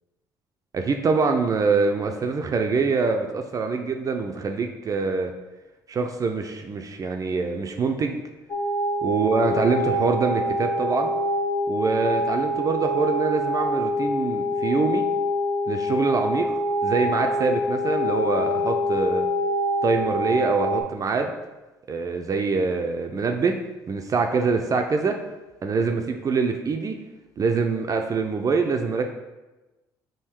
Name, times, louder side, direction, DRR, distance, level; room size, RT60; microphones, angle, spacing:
voice 1, 0.7-5.3 5.9-8.2 9.0-11.1 11.7-15.1 15.7-19.3 19.8-21.3 21.9-23.6 23.9-25.2 25.6-26.9 27.4-29.1, right 4 dB, 35° right, 4 dB, 0.4 m, -24 dB
sound 1, 8.5-20.8, equal, 50° left, 0.6 m, -25 dB
3.6 x 2.7 x 4.3 m, 1.1 s
hypercardioid pair, 60°, 9 cm